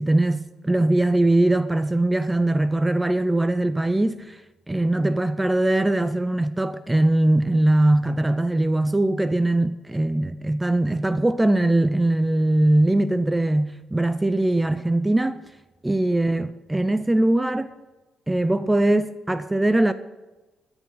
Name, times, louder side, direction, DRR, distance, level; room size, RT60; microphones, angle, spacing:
voice 1, 0.0-4.4 4.7-15.4 15.8-17.7 18.3-19.9, right 1 dB, 10° right, 0.5 m, -21 dB
12.5 x 9.9 x 5.7 m
cardioid pair, 90°, 0 cm